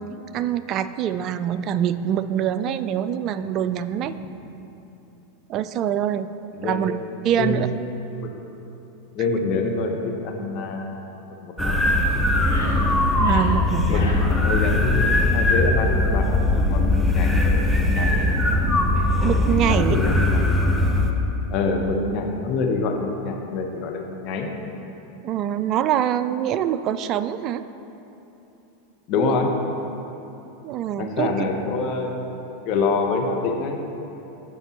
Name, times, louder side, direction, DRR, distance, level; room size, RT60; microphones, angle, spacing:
voice 1, 0.3-4.1 5.5-6.3 6.6-6.9 7.2-7.7 13.2-14.1 19.2-20.0 25.2-27.6 29.2-29.3 30.6-31.3, right 10 dB, 45° right, 12 dB, 0.4 m, -24 dB
voice 2, 6.5-6.9 7.4-7.7 8.2-8.3 9.1-11.1 11.4-12.0 13.9-18.3 19.7-20.8 21.5-24.5 29.1-29.5 31.0-32.4 32.7-33.8, left 4 dB, 50° left, 2 dB, 1.1 m, -26 dB
sound 1, 11.6-21.1, left 2 dB, 5° left, 0.8 m, -20 dB
sound 2, 11.8-11.9 12.4-12.8 13.1-13.5 13.9-14.2, left 4 dB, 80° left, 1.3 m, -36 dB
15.0 x 5.2 x 3.0 m, 2.9 s
hypercardioid pair, 95°, 0 cm